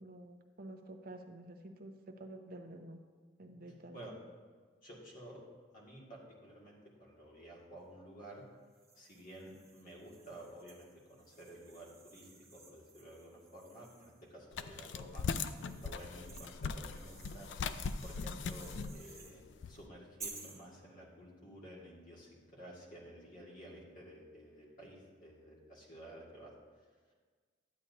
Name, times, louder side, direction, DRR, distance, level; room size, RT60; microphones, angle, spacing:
voice 1, 0.0-3.0 3.4-4.0, right 1 dB, 50° right, 4 dB, 0.7 m, -50 dB
voice 2, 4.8-5.4 5.7-8.4 8.9-15.5 15.8-17.7 18.0-26.9, right 1 dB, 45° left, -4 dB, 2.0 m, -52 dB
sound 1, 8.7-14.3 14.9-19.4 20.2-20.6, right 4 dB, 15° right, 1.0 m, -55 dB
sound 2, 14.5-19.8, left 5 dB, 70° left, 0.4 m, -40 dB
11.5 x 8.5 x 2.7 m, 1.5 s
head